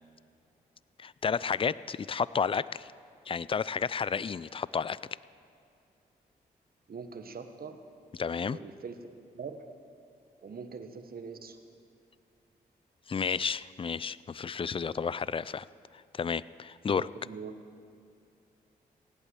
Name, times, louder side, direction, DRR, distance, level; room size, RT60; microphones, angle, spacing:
voice 1, 1.0-2.9 3.3-5.0 8.2-8.6 13.1-15.7 15.9-17.1, left 6 dB, 30° left, 19 dB, 0.4 m, -31 dB
voice 2, 6.9-7.8 8.5-9.0 9.3-9.6 10.4-11.6 16.9-17.5, right 5 dB, 60° right, 8 dB, 1.3 m, -42 dB
17.0 x 8.9 x 7.8 m, 2.4 s
supercardioid pair, 50°, 17 cm